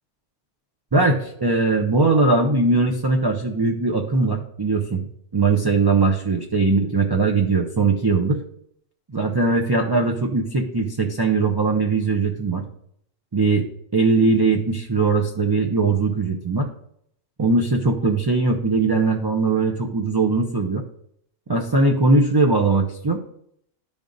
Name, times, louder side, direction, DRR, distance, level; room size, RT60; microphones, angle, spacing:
voice 1, 0.9-5.1 5.3-8.4 9.1-12.6 13.3-13.7 13.9-16.7 17.4-20.8 21.5-23.2, right 3 dB, 35° right, 1 dB, 0.4 m, -20 dB
12.0 x 5.2 x 2.6 m, 0.69 s
omnidirectional pair, 1.3 m